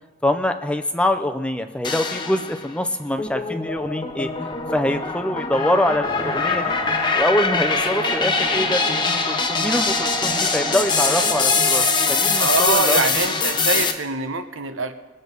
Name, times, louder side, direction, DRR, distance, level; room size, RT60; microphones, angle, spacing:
voice 1, 0.2-6.7 7.1-13.2, left 1 dB, 5° left, 7 dB, 0.5 m, -24 dB
sound 1, 1.8-2.7 3.2-13.9, left 5 dB, 20° left, 0.9 m, -23 dB
sound 2, 6.0-12.7, right 3 dB, 15° right, 1.3 m, -30 dB
voice 2, 12.4-14.9, right 4 dB, 75° right, 8 dB, 0.9 m, -24 dB
21.5 x 7.7 x 5.4 m, 1.3 s
head